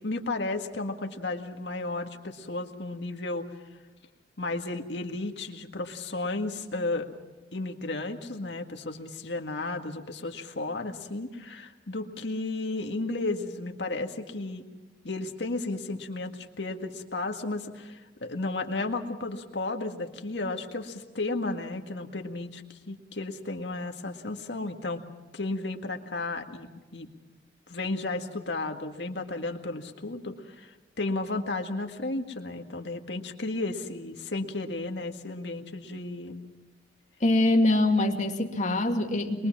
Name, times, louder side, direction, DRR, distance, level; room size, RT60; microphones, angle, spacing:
voice 1, 0.0-3.5 4.4-7.1 7.5-14.6 15.0-25.0 25.3-27.1 27.7-36.4, left 2 dB, 80° left, 4 dB, 1.8 m, -33 dB
voice 2, 37.2-39.5, left 2 dB, 45° left, 2 dB, 2.2 m, -24 dB
23.0 x 22.0 x 6.1 m, 1.2 s
head